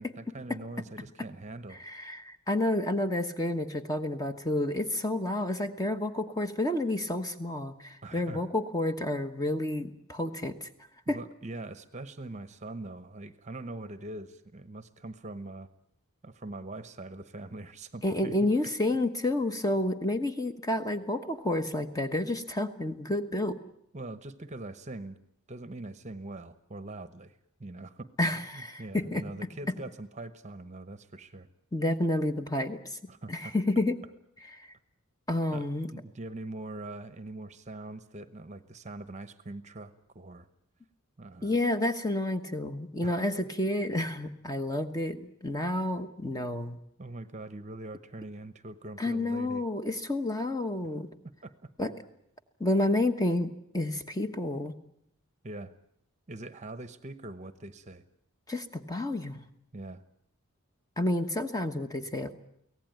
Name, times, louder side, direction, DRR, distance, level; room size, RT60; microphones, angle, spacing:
voice 1, 0.0-1.8 8.0-8.4 11.1-15.7 16.2-18.5 23.9-25.2 25.5-28.1 28.3-31.5 33.1-33.5 35.5-40.5 41.2-41.5 43.0-43.1 47.0-49.6 51.4-51.5 55.4-55.7 56.3-58.0 59.7-60.0, right 2 dB, 30° right, 12 dB, 0.9 m, -42 dB
voice 2, 1.8-10.7 11.1-11.2 18.0-23.6 28.2-29.2 31.7-33.0 33.3-34.0 35.3-35.9 41.4-46.8 49.0-51.1 51.8-51.9 52.6-53.5 53.7-54.7 58.5-59.4 61.0-62.3, left 1 dB, 15° left, 7 dB, 1.2 m, -30 dB
24.0 x 17.5 x 9.3 m, 0.76 s
head